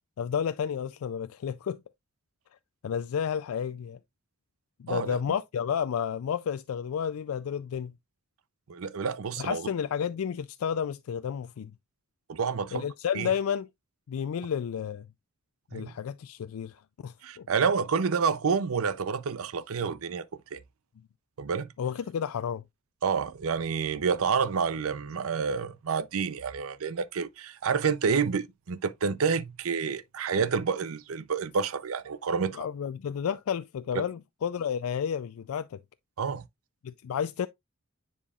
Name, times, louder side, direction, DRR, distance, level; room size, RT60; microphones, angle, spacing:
voice 1, 0.2-1.8 2.8-4.0 4.8-7.9 9.4-11.7 12.7-13.7 14.1-15.1 15.7-16.8 17.0-17.5 21.8-22.6 32.5-35.8 36.8-37.5, left 7 dB, 85° left, 0.4 m, -31 dB
voice 2, 4.9-5.2 8.7-9.7 12.3-12.9 13.1-13.3 15.7-15.9 17.2-20.2 20.5-20.6 21.4-21.7 23.0-32.7 33.9-34.0 36.2-36.5, right 5 dB, 80° right, 0.5 m, -29 dB
9.9 x 4.4 x 2.3 m
head